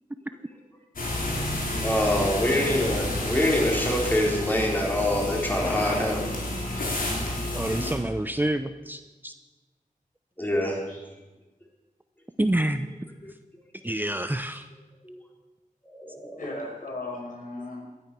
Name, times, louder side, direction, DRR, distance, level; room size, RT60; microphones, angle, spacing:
sound 1, 1.0-7.9, left 1 dB, 90° left, 4.5 m, -30 dB
voice 1, 1.0-1.5 10.9-11.0 16.4-17.8, left 2 dB, 70° left, -1 dB, 5.9 m, -38 dB
voice 2, 1.8-6.2 10.4-10.8 13.2-13.3 15.0-15.2 15.9-16.4, left 1 dB, 15° left, -1 dB, 4.1 m, -25 dB
voice 3, 7.5-9.3 12.4-12.9 13.8-14.7, right 1 dB, 15° right, 9 dB, 0.7 m, -27 dB
18.5 x 13.0 x 6.1 m, 1.1 s
wide cardioid pair, 95°, 14 cm